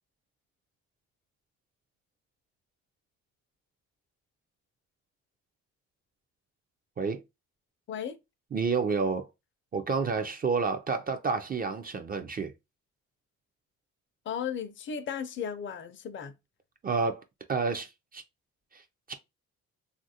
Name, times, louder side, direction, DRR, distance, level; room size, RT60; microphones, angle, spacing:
voice 1, 8.5-9.3 9.7-12.5 16.8-17.2 17.5-18.2 18.7-18.8 19.1-19.2, right 5 dB, 30° right, 0.4 m, -29 dB
voice 2, 14.3-16.3, left 7 dB, 40° left, 0.5 m, -35 dB
3.0 x 2.5 x 2.7 m
cardioid pair, 90°, 30 cm